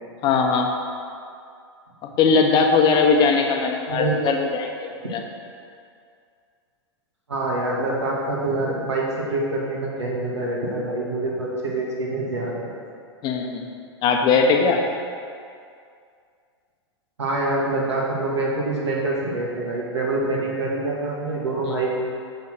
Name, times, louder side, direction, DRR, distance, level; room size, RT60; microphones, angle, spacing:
voice 1, 0.2-0.7 2.2-4.7 5.1-5.2 13.2-13.7 14.0-14.8 21.7-21.8, left 5 dB, 30° left, 3 dB, 0.9 m, -19 dB
voice 2, 3.9-4.2 7.3-12.7 17.2-22.0, right 2 dB, 80° right, -4 dB, 2.1 m, -25 dB
6.9 x 5.6 x 6.2 m, 2.3 s
figure-of-eight pair, 100°, 15 cm